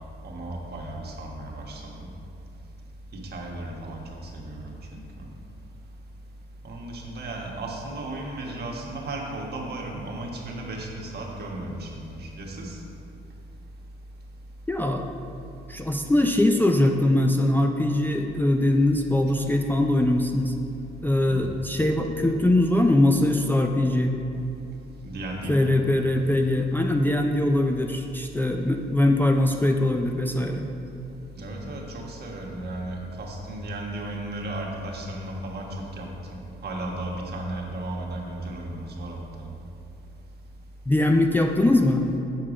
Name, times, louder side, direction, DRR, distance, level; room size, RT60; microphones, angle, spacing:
voice 1, 0.2-2.1 3.1-5.0 6.6-12.8 21.3-21.5 25.0-25.7 31.3-35.7 36.0-39.5, right 1 dB, 55° right, -1 dB, 1.3 m, -35 dB
voice 2, 14.7-15.1 15.7-20.5 21.0-24.1 25.5-30.7 40.9-42.1, left 1 dB, 10° left, 2 dB, 0.4 m, -22 dB
7.4 x 4.6 x 5.0 m, 2.7 s
cardioid pair, 90°, 20 cm